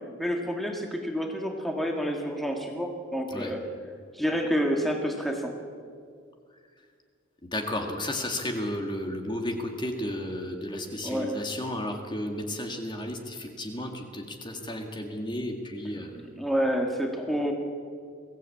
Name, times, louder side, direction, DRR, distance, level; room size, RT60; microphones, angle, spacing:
voice 1, 0.2-3.6 4.1-5.5 11.0-11.4 16.2-17.5, equal, ahead, 2 dB, 1.9 m, -29 dB
voice 2, 7.5-16.1, left 1 dB, 20° left, 3 dB, 1.9 m, -33 dB
22.0 x 16.0 x 8.5 m, 2.2 s
head